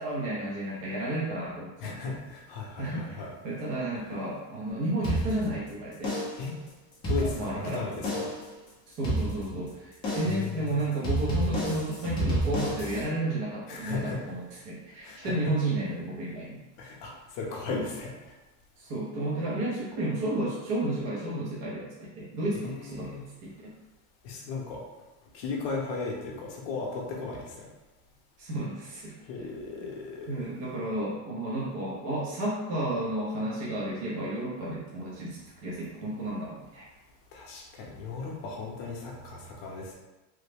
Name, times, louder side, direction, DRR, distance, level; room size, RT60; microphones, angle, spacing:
voice 1, 0.0-2.1 2.8-6.1 7.0-7.8 8.9-16.6 17.7-17.8 18.8-23.1 23.4-23.7 28.4-29.2 30.3-36.9, right 1 dB, 45° right, -6 dB, 0.6 m, -32 dB
voice 2, 1.8-3.3 4.0-4.2 6.4-6.5 7.1-8.3 10.2-10.9 13.7-14.4 15.0-15.5 16.8-18.1 22.5-23.2 24.2-24.8 25.3-27.7 29.2-30.5 37.3-39.9, left 4 dB, 50° left, -1 dB, 0.7 m, -36 dB
sound 1, 5.0-5.7 6.0-6.5 6.9-7.7 8.0-8.5 9.0-9.7 10.0-10.5 11.0-13.0, equal, 15° left, 0.4 m, -30 dB
3.1 x 2.0 x 3.3 m, 1.1 s
cardioid pair, 175°, 37 cm